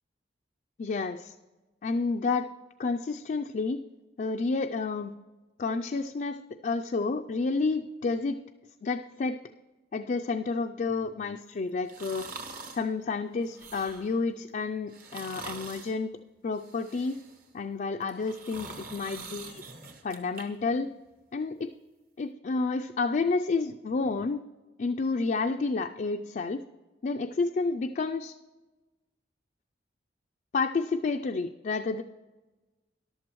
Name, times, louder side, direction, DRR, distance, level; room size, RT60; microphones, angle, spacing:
voice 1, 0.8-1.3 1.8-2.5 2.8-3.8 4.2-5.1 5.6-6.4 6.6-8.4 8.8-9.4 9.9-12.3 12.7-16.1 16.4-17.2 17.5-19.6 20.0-20.9 21.3-21.7 22.2-24.4 24.8-26.6 27.0-28.3 30.5-32.0, left 4 dB, 45° left, 5 dB, 0.4 m, -30 dB
sound 1, 11.9-12.9 13.4-14.2 14.9-16.0 16.5-17.5 18.0-20.4 20.8-20.9, right 4 dB, 55° right, 1.4 m, -44 dB
13.5 x 11.5 x 3.0 m, 1.2 s
head